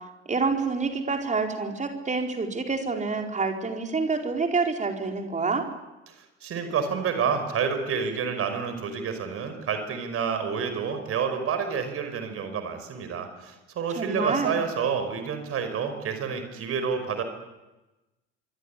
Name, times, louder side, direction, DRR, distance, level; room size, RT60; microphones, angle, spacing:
voice 1, 0.3-5.7 14.0-14.5, right 4 dB, 20° right, 3 dB, 4.7 m, -27 dB
voice 2, 6.1-17.2, right 6 dB, 40° right, 8 dB, 5.5 m, -29 dB
25.5 x 24.5 x 8.5 m, 1.0 s
figure-of-eight pair, 65°, 35 cm